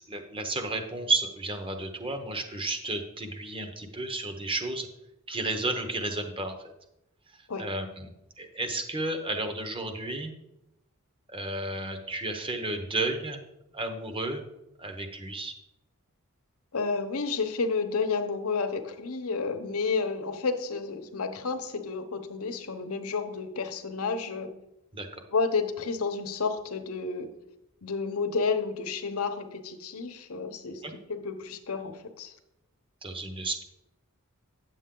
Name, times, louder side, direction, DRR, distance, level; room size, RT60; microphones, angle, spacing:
voice 1, 0.0-4.9 5.3-6.6 7.6-8.1 8.4-10.3 11.3-13.4 13.7-14.5 14.8-15.5 24.9-25.2 30.8-30.9 33.0-33.6, right 2 dB, 25° right, 6 dB, 0.9 m, -32 dB
voice 2, 16.7-24.5 25.3-27.3 27.8-32.3, left 4 dB, 80° left, 8 dB, 0.9 m, -31 dB
9.3 x 7.2 x 3.8 m, 0.88 s
head